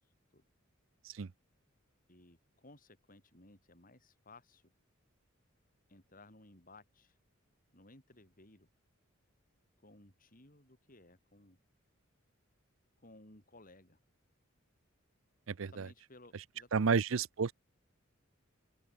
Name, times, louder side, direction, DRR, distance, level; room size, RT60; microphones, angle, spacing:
voice 1, 2.1-4.6 5.9-7.2 7.7-8.7 9.8-11.6 13.0-14.0 15.7-17.2, left 2 dB, 40° left, 5.9 m, -59 dB
voice 2, 15.5-15.9 16.7-17.5, right 5 dB, 70° right, 0.6 m, -31 dB
open air
head